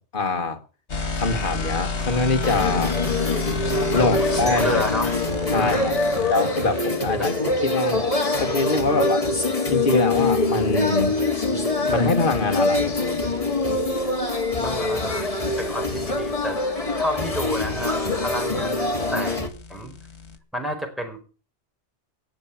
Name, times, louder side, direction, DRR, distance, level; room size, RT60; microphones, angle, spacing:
voice 1, 0.1-0.6 1.1-3.0 3.9-4.8 5.5-5.9 6.3-8.0 8.4-9.2 9.7-11.2 11.9-13.2, left 3 dB, 50° left, 5 dB, 1.8 m, -24 dB
sound 1, 0.9-6.9 9.4-20.4, left 4 dB, 90° left, 1.9 m, -33 dB
sound 2, 2.4-19.5, left 2 dB, 30° left, 2.2 m, -24 dB
voice 2, 4.0-5.1 5.5-6.2 7.2-7.3 14.6-15.3 15.6-19.4 19.7-19.9 20.5-21.2, equal, ahead, 2 dB, 4.7 m, -31 dB
sound 3, 4.5-7.3, right 5 dB, 20° right, 5.3 m, -44 dB
18.5 x 7.3 x 7.2 m, 0.37 s
omnidirectional pair, 1.1 m